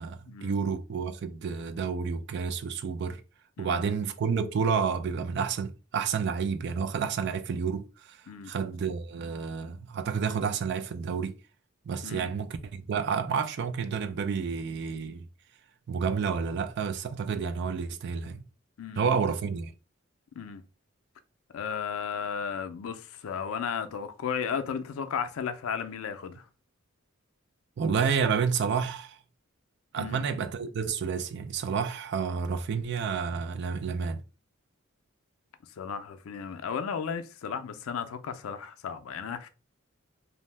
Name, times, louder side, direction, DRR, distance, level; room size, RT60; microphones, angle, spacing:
voice 1, 0.0-3.2 3.6-8.2 8.5-11.3 11.9-15.2 15.9-18.4 19.0-19.7 27.8-29.2 29.9-34.2, right 6 dB, 55° right, 0.3 m, -30 dB
voice 2, 3.6-3.9 8.3-8.5 12.0-12.3 18.8-19.1 20.4-20.6 21.5-26.4 30.0-30.2 35.8-39.5, left 7 dB, 90° left, 0.4 m, -34 dB
2.6 x 2.1 x 3.2 m
head